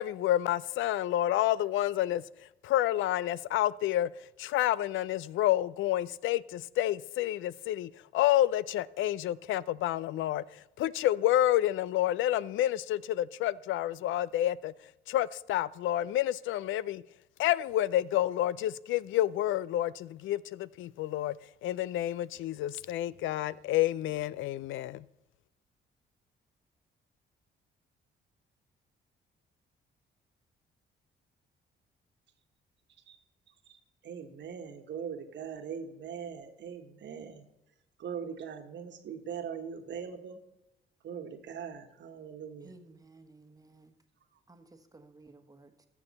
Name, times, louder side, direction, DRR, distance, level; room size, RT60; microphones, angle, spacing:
voice 1, 0.0-2.2 2.6-4.1 4.4-14.7 15.1-17.0 17.4-21.3 21.6-25.0, left 13 dB, 80° left, 0.4 m, -29 dB
voice 2, 33.7-37.5 38.0-40.4 41.0-42.8, right 7 dB, 65° right, 1.4 m, -41 dB
voice 3, 42.6-43.9 44.5-45.9, right 3 dB, 20° right, 1.3 m, -56 dB
13.5 x 7.0 x 4.2 m
cardioid pair, 90°, 20 cm